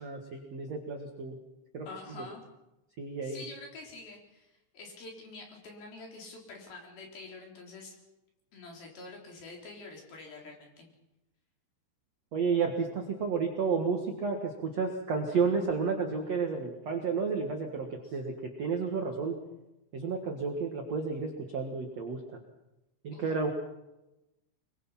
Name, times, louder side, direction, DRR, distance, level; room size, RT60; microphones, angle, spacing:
voice 1, 0.0-1.3 1.7-1.9 2.2-2.3 3.0-3.4 12.3-19.4 19.9-22.4 23.0-23.5, right 5 dB, 65° right, 3 dB, 1.6 m, -31 dB
voice 2, 1.9-2.4 3.2-8.0 8.5-10.9 18.0-18.2 23.1-23.4, left 3 dB, 50° left, 0 dB, 5.4 m, -47 dB
24.0 x 22.5 x 5.8 m, 0.95 s
omnidirectional pair, 5.9 m